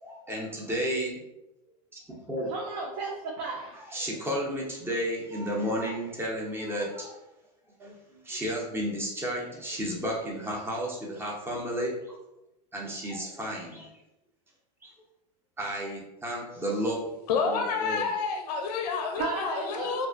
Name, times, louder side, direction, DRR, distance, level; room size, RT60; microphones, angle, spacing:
voice 1, 0.0-1.2 2.1-2.5 3.9-7.2 7.8-12.2 12.7-13.9 14.8-14.9 15.6-17.1 17.4-18.0, equal, 10° right, -2 dB, 0.7 m, -32 dB
voice 2, 2.5-3.8 19.2-20.1, right 3 dB, 60° right, -1 dB, 0.5 m, -34 dB
voice 3, 17.3-20.1, left 5 dB, 75° left, 5 dB, 0.4 m, -29 dB
2.5 x 2.3 x 2.2 m, 0.92 s
hypercardioid pair, 100°, 21 cm